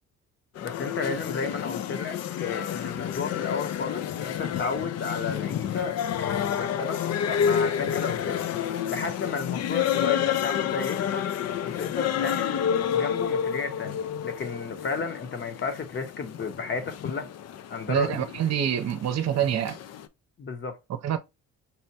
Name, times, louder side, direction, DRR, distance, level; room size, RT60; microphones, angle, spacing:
sound 1, 0.6-20.1, left 9 dB, 60° left, 0.5 m, -30 dB
voice 1, 0.6-7.0 7.3-8.4 8.9-11.3 11.6-12.6 12.9-17.3 17.7-18.2 20.4-20.8, left 5 dB, 40° left, 0.9 m, -33 dB
voice 2, 17.9-19.8 21.0-21.2, right 10 dB, 60° right, 0.7 m, -26 dB
5.5 x 2.2 x 2.8 m
cardioid pair, 90°, 30 cm